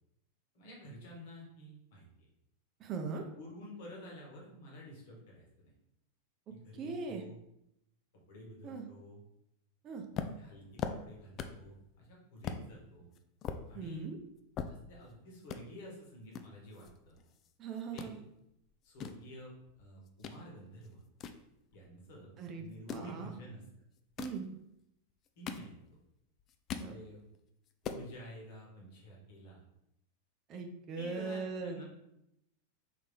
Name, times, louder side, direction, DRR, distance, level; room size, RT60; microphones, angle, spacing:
voice 1, 0.5-2.3 3.4-5.7 6.5-7.4 8.3-9.2 10.2-13.1 13.7-14.0 14.7-17.1 17.9-18.2 18.8-19.5 19.8-21.0 21.7-23.6 25.4-25.7 26.8-27.2 27.8-29.6 30.5-30.6 31.0-31.8, equal, 50° left, -2 dB, 1.4 m, -50 dB
voice 2, 2.8-3.2 6.8-7.2 8.6-8.9 9.8-10.0 13.7-14.2 17.6-18.2 22.4-23.3 24.2-24.5 26.8-26.9 30.5-31.8, right 4 dB, 30° right, 4 dB, 0.5 m, -40 dB
sound 1, 10.1-11.7 12.0-12.1 12.4-12.6 13.1-15.1 15.4-15.6 16.3-17.5 17.8-18.1 18.7-20.4 20.8-22.1 22.7-23.1 24.0-24.5 25.1-26.1 26.4-26.9 27.3-27.4 27.7-28.1, left 7 dB, 30° left, 0.3 m, -41 dB
3.8 x 3.2 x 3.5 m, 0.81 s
figure-of-eight pair, 90°, 0 cm